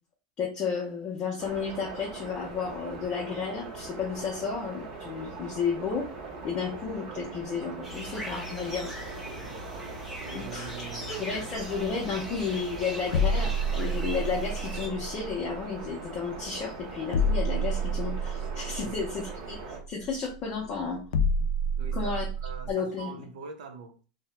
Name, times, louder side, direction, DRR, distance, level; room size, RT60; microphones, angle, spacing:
voice 1, 0.4-6.1 6.4-9.2 10.3-19.6 19.9-21.0 21.9-22.3 22.7-23.2, left 5 dB, 25° left, 0.5 m, -32 dB
sound 1, 1.4-19.8, right 3 dB, 35° right, 0.8 m, -41 dB
sound 2, 7.8-14.9, equal, 5° right, 0.8 m, -40 dB
voice 2, 10.2-11.4 18.8-19.0 21.7-24.0, right 5 dB, 90° right, 0.6 m, -43 dB
sound 3, 11.5-22.7, equal, 85° left, 0.4 m, -30 dB
2.8 x 2.0 x 3.2 m
supercardioid pair, 170°, 4 cm